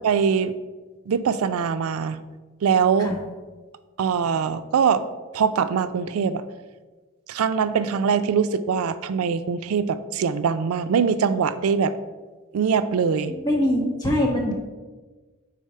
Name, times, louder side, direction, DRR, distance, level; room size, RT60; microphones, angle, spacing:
voice 1, 0.0-0.5 1.1-2.2 2.6-3.1 4.0-5.0 5.3-6.4 7.3-12.0 12.5-13.3, right 6 dB, 90° right, 13 dB, 0.3 m, -22 dB
voice 2, 13.3-14.5, left 1 dB, 20° left, -2 dB, 1.1 m, -23 dB
4.9 x 3.9 x 5.4 m, 1.3 s
head